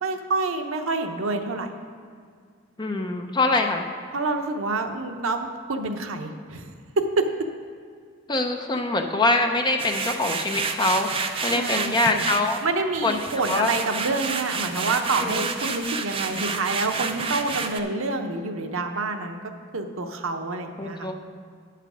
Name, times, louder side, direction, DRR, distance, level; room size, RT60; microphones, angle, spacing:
voice 1, 0.0-1.7 4.1-6.7 7.0-7.3 11.5-12.3 12.6-19.4 19.7-21.1, right 3 dB, 85° right, 6 dB, 0.7 m, -27 dB
voice 2, 2.8-3.9 8.3-12.6 13.0-13.2 13.5-13.7 15.2-15.5 20.8-21.2, left 2 dB, 20° left, 4 dB, 0.5 m, -24 dB
sound 1, 9.8-12.6 12.9-17.8, right 5 dB, 25° right, 0.4 m, -30 dB
9.2 x 5.8 x 6.1 m, 2.1 s
head